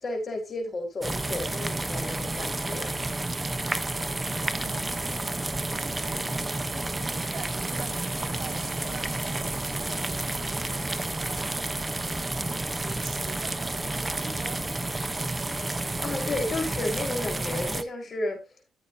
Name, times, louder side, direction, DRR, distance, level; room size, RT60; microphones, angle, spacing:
voice 1, 0.0-3.0 15.8-18.4, left 2 dB, 35° left, 5.0 m, -32 dB
sound 1, 1.0-17.8, right 2 dB, 15° right, 1.0 m, -30 dB
voice 2, 4.4-5.3 5.7-6.4 6.7-10.5 11.2-11.7 12.8-14.6, right 6 dB, 60° right, 3.7 m, -45 dB
14.5 x 8.1 x 2.9 m
cardioid pair, 90°, 0 cm